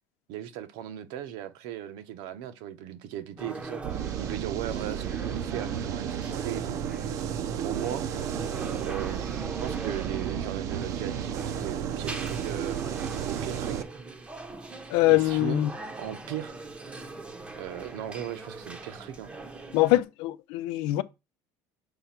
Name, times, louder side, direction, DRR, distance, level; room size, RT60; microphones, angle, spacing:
voice 1, 0.3-3.8 4.2-6.8 7.4-8.1 8.8-12.8 13.2-13.9 15.1-15.6 16.0-16.5 17.5-19.3, right 11 dB, 75° right, 0.9 m, -37 dB
sound 1, 3.4-20.0, right 3 dB, 15° right, 0.8 m, -41 dB
sound 2, 3.8-13.8, right 9 dB, 45° right, 0.6 m, -33 dB
voice 2, 14.9-15.7 19.7-21.0, left 17 dB, 90° left, 0.5 m, -23 dB
6.9 x 3.5 x 5.8 m
cardioid pair, 165°, 8 cm